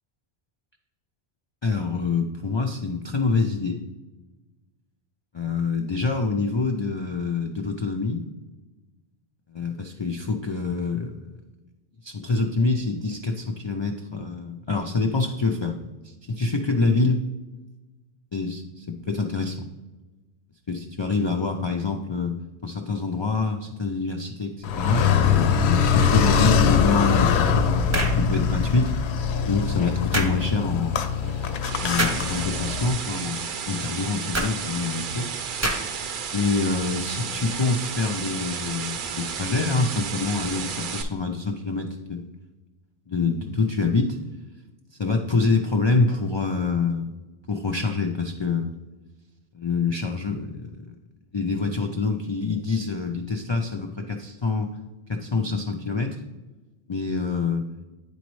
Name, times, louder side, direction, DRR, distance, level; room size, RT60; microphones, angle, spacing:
voice 1, 1.6-3.8 5.3-8.2 9.5-11.4 12.0-15.8 16.0-17.2 18.3-19.7 20.7-22.4 22.6-25.0 25.6-28.9 29.5-31.0 31.8-35.3 36.3-42.2 43.1-44.2 45.0-47.1 47.5-48.8 49.5-50.9 51.3-54.7 55.1-56.2 56.9-57.7, left 4 dB, 45° left, 3 dB, 0.3 m, -26 dB
Car, 24.6-32.9, left 6 dB, 80° left, 0.8 m, -22 dB
sound 1, 27.9-28.2 30.1-30.4 32.0-32.3 34.3-34.5 35.6-36.0, right 1 dB, 15° right, 0.7 m, -25 dB
sound 2, 31.2-41.0, right 6 dB, 60° right, 0.6 m, -32 dB
9.9 x 4.1 x 3.1 m, 1.2 s
omnidirectional pair, 1.1 m